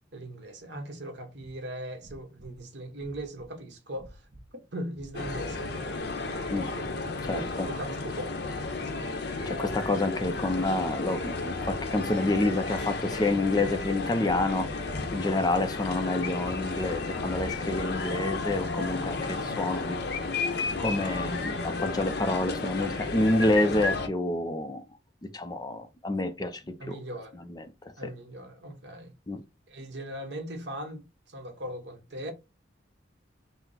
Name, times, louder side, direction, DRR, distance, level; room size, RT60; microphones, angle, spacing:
voice 1, 0.1-4.2 4.7-5.9 6.3-6.8 7.3-8.5 8.8-9.1 26.8-27.4 28.0-29.1 29.7-32.3, right 1 dB, 65° right, 1.1 m, -39 dB
sound 1, 1.4-1.6 2.0-2.6 2.9-3.5 3.9-4.5 4.9-5.5 5.9-6.5 6.8-7.4 7.7-8.2 8.5-9.0 9.4-9.8 10.1-10.6 10.9-11.3 11.6-12.0 12.3-19.5, right 1 dB, 35° right, 0.8 m, -51 dB
sound 2, 5.1-24.1, left 3 dB, 60° left, 0.7 m, -33 dB
voice 2, 7.2-7.7 9.5-20.0 20.5-24.8 25.3-27.0 27.3-27.7 28.0-28.1 29.3-29.4, left 2 dB, 20° left, 0.4 m, -28 dB
4.1 x 2.0 x 3.9 m
head